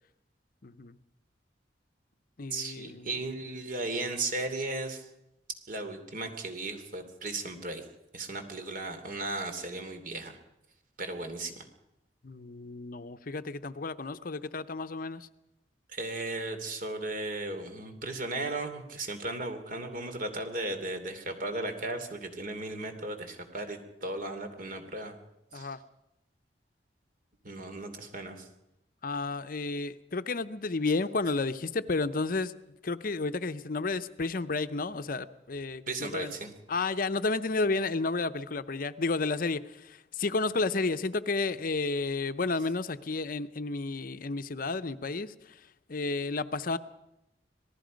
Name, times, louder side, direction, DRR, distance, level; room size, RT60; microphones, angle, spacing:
voice 1, 0.6-1.0 2.4-3.2 12.2-15.3 25.5-25.8 29.0-36.3 36.7-46.8, left 3 dB, 55° left, 12 dB, 0.7 m, -32 dB
voice 2, 2.5-5.0 5.7-7.8 8.1-10.4 11.0-11.7 15.9-25.1 25.5-25.7 27.4-28.5 35.9-36.5, right 2 dB, 50° right, 7 dB, 2.8 m, -36 dB
27.0 x 18.5 x 5.2 m, 0.87 s
head